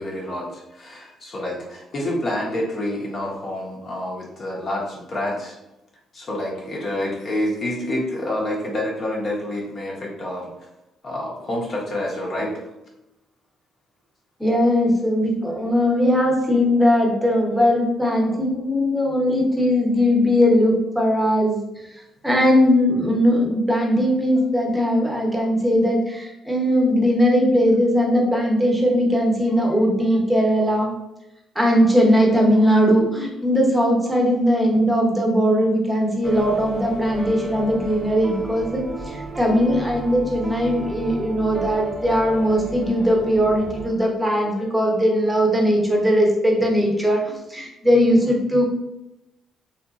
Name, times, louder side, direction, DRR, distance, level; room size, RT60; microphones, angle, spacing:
voice 1, 0.0-5.6 6.1-10.5 11.0-12.5, left 1 dB, 50° left, -3 dB, 0.7 m, -28 dB
voice 2, 14.4-30.9 31.5-47.2 47.5-48.6, equal, 5° right, -1 dB, 0.7 m, -19 dB
sound 1, 36.2-43.9, right 2 dB, 25° right, 0.3 m, -34 dB
2.8 x 2.2 x 2.3 m, 0.92 s
cardioid pair, 90°, 0 cm